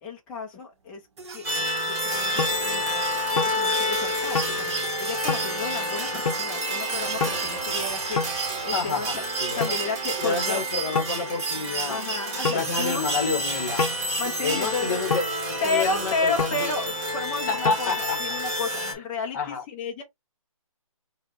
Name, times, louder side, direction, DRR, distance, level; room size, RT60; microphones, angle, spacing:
voice 1, 0.0-1.0 1.3-3.0 3.3-9.2 9.6-10.6 11.9-13.1 14.2-15.2 15.6-20.0, left 4 dB, 5° left, 0.4 m, -32 dB
sound 1, 1.2-15.1 16.5-16.6, right 5 dB, 50° right, 0.8 m, -36 dB
sound 2, 1.4-18.9, equal, 30° right, 1.2 m, -29 dB
sound 3, 2.4-2.6 3.4-3.6 4.3-4.6 5.3-5.5 6.3-6.4 7.2-7.4 8.2-8.4 9.6-9.8 11.0-11.2 12.4-12.7 13.8-14.0 15.1-15.3 16.4-16.6 17.7-17.8, left 4 dB, 85° left, 0.5 m, -26 dB
voice 2, 8.7-9.7 10.2-12.0 12.5-13.9 14.4-16.7 17.5-18.4 18.8-18.9 19.3-19.6, left 5 dB, 25° left, 0.8 m, -29 dB
4.9 x 2.1 x 2.5 m
hypercardioid pair, 155°, 18 cm